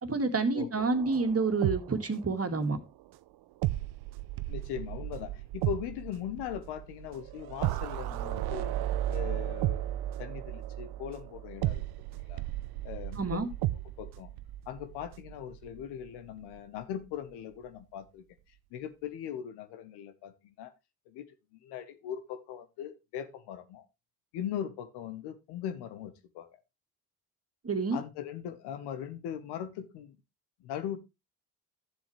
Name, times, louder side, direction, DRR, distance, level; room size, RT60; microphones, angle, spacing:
voice 1, 0.0-2.8 13.2-13.5 27.6-28.0, right 3 dB, 35° right, 2.1 m, -28 dB
voice 2, 0.5-0.9 4.5-8.7 9.1-9.9 10.2-11.8 12.1-12.4 12.8-13.4 14.0-14.3 14.7-18.2 18.7-20.7 21.1-21.3 21.5-23.9 24.3-26.5 27.9-30.2 30.6-31.0, left 9 dB, 80° left, 1.2 m, -40 dB
sound 1, 0.8-2.8 3.6-16.1 16.4-16.6, right 14 dB, 65° right, 0.6 m, -35 dB
13.0 x 7.3 x 3.2 m
hypercardioid pair, 45°, 40 cm